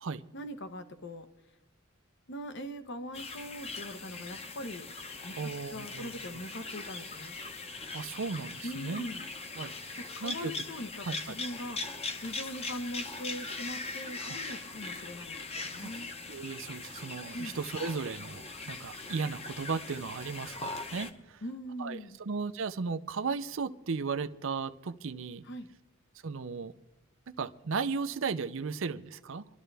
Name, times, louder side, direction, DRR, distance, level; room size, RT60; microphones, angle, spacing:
voice 1, 0.3-1.3 2.3-4.9 5.2-7.4 8.6-9.2 10.0-11.8 12.2-16.1 17.3-17.6 21.4-22.2 25.4-25.7, equal, 55° left, 9 dB, 1.1 m, -41 dB
sound 1, 3.1-21.1, left 3 dB, 30° left, 1.0 m, -41 dB
voice 2, 5.4-6.1 7.9-9.0 9.6-10.5 11.1-11.2 14.2-14.4 15.8-15.9 16.3-21.4 21.8-25.5 26.2-26.7 27.3-29.5, right 5 dB, 65° right, 11 dB, 0.6 m, -36 dB
24.0 x 12.0 x 3.4 m, 1.0 s
head